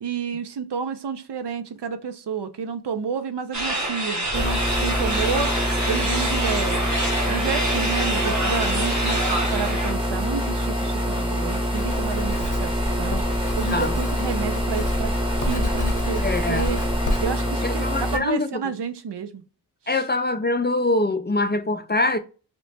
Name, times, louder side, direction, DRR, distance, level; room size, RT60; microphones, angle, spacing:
voice 1, 0.0-5.5 5.9-6.9 7.3-13.2 13.6-15.1 15.4-16.8 17.2-19.4 19.9-20.0, right 6 dB, 80° right, 0.5 m, -30 dB
sound 1, 3.5-9.9, right 1 dB, 45° right, 1.2 m, -26 dB
sound 2, 4.3-18.2, equal, 15° right, 0.9 m, -25 dB
Writing, 11.7-17.2, left 1 dB, 50° left, 0.8 m, -30 dB
voice 2, 16.2-16.7 17.6-18.5 19.9-22.2, left 2 dB, 25° left, 0.4 m, -23 dB
2.9 x 2.1 x 4.0 m
wide cardioid pair, 40°, 40 cm